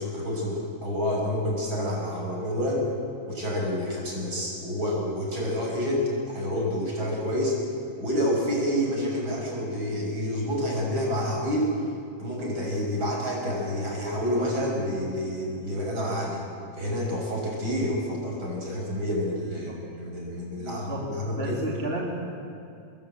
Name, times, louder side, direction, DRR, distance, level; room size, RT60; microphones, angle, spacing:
voice 1, 0.0-2.9 3.3-7.6 8.0-11.7 12.2-16.5 16.7-21.6, equal, 40° right, -1 dB, 7.5 m, -28 dB
voice 2, 20.5-21.1 21.3-22.1, right 2 dB, 20° right, -3 dB, 2.8 m, -33 dB
26.0 x 21.0 x 9.0 m, 2.5 s
omnidirectional pair, 3.3 m